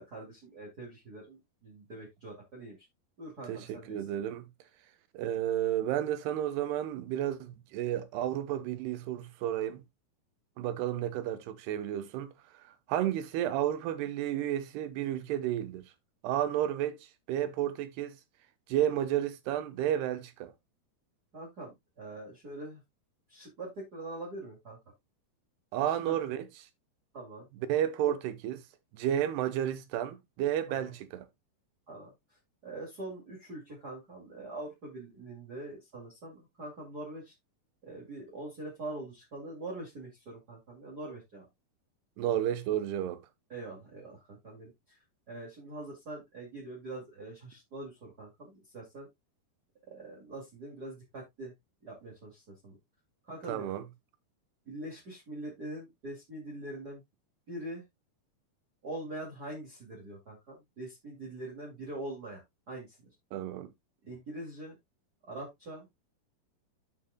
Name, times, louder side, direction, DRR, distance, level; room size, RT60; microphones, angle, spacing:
voice 1, 0.0-2.8 3.2-4.0 21.3-22.8 23.3-24.8 25.8-26.2 27.1-27.5 30.7-30.9 31.9-32.1 32.6-37.3 37.8-41.5 43.5-45.0 45.3-49.1 49.9-51.5 51.8-52.8 53.3-53.7 54.7-57.0 57.5-57.8 58.8-62.4 62.7-63.0 64.0-64.7 65.3-65.9, right 2 dB, 30° right, 2.2 m, -43 dB
voice 2, 3.5-4.4 5.1-9.8 10.6-15.9 16.2-17.0 17.3-18.2 18.7-20.5 25.7-26.5 27.7-28.6 28.9-31.3 42.2-43.2 53.5-53.8 63.3-63.7, right 11 dB, 85° right, 3.0 m, -32 dB
13.0 x 5.7 x 2.2 m
omnidirectional pair, 4.6 m